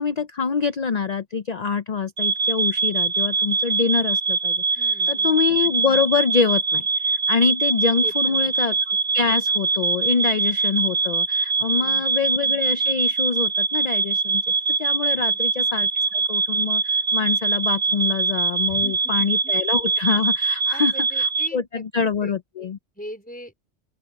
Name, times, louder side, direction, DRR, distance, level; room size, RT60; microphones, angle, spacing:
voice 1, 0.0-14.4 14.8-22.8, left 5 dB, 45° left, 0.6 m, -25 dB
sound 1, 2.2-21.5, right 4 dB, 70° right, 2.0 m, -23 dB
voice 2, 4.8-5.3 8.0-8.6 11.6-12.1 15.1-15.4 18.6-19.5 20.7-22.7 23.0-23.7, equal, 5° left, 4.3 m, -41 dB
open air
omnidirectional pair, 1.2 m